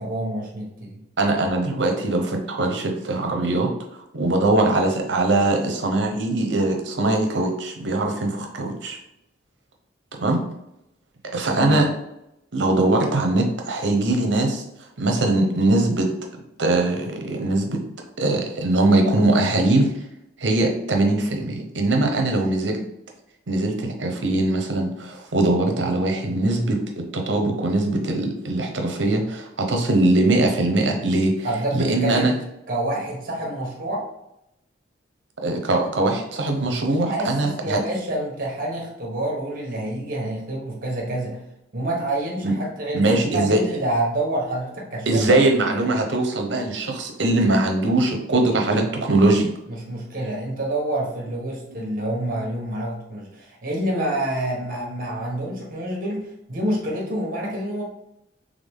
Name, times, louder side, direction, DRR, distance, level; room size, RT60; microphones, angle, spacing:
voice 1, 0.0-1.0 11.5-11.8 31.4-32.3 32.7-34.0 37.1-41.4 41.7-45.4 49.7-57.8, right 1 dB, 50° right, -1 dB, 1.3 m, -27 dB
voice 2, 1.2-9.0 10.1-10.4 11.3-11.9 12.5-14.6 15.0-16.1 16.6-17.8 18.2-19.9 20.4-22.8 23.5-31.3 31.7-32.3 35.4-37.8 42.4-42.5 42.9-43.6 45.1-49.5 51.7-51.9, right 2 dB, 70° right, 3 dB, 0.8 m, -21 dB
3.9 x 3.5 x 3.6 m, 0.84 s
head